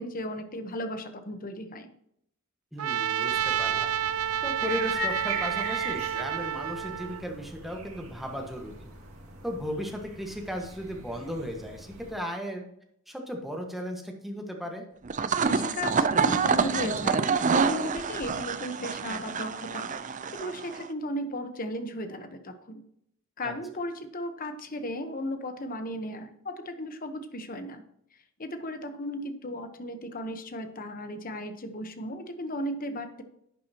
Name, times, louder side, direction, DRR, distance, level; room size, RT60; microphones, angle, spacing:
voice 1, 0.0-1.9 15.4-22.8 23.4-27.8 28.4-33.2, left 1 dB, 40° left, 8 dB, 1.1 m, -36 dB
voice 2, 2.7-3.9 4.4-8.9 9.4-12.6 13.1-14.8 23.4-23.5, equal, ahead, 1 dB, 1.5 m, -36 dB
Trumpet, 2.8-7.2, right 9 dB, 90° right, 0.5 m, -29 dB
sound 1, 3.2-12.1, equal, 70° right, 2.3 m, -41 dB
sound 2, 15.0-20.9, right 5 dB, 35° right, 0.5 m, -27 dB
11.0 x 8.5 x 2.9 m, 0.74 s
head